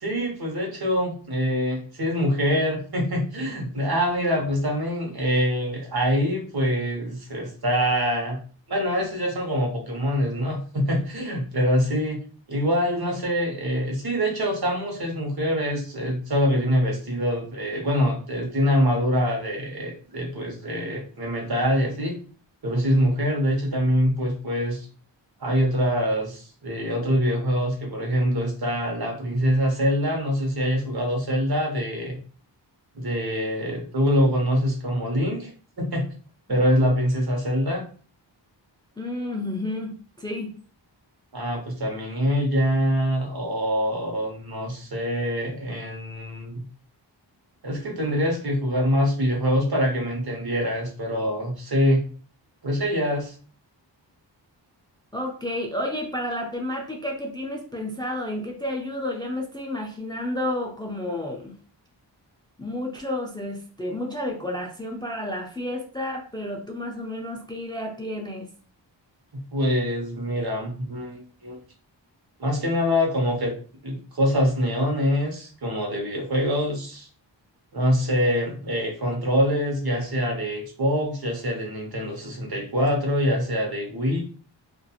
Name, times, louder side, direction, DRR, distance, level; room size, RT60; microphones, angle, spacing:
voice 1, 0.0-8.4 8.7-12.2 12.5-22.1 22.6-24.9 25.4-32.2 32.9-35.5 35.8-36.1 36.5-37.8 41.3-46.6 47.6-52.0 52.6-53.3 69.5-71.6 72.4-73.5 73.8-77.1 77.7-84.2, equal, 55° right, 1 dB, 0.9 m, -24 dB
voice 2, 39.0-40.5 55.1-61.6 62.6-68.5, left 1 dB, 10° left, 1 dB, 0.4 m, -31 dB
2.8 x 2.4 x 2.3 m, 0.41 s
wide cardioid pair, 70°, 44 cm